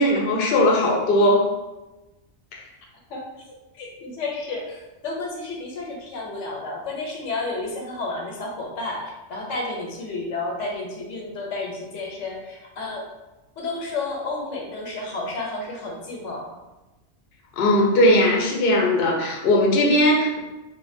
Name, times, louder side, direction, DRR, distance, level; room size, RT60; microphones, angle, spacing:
voice 1, 0.0-1.5 2.5-2.6 17.6-20.4, left 1 dB, 60° left, -1 dB, 0.6 m, -19 dB
voice 2, 3.7-13.1 13.6-16.6, left 3 dB, 85° left, -1 dB, 0.9 m, -31 dB
2.5 x 2.0 x 2.5 m, 1.1 s
omnidirectional pair, 1.2 m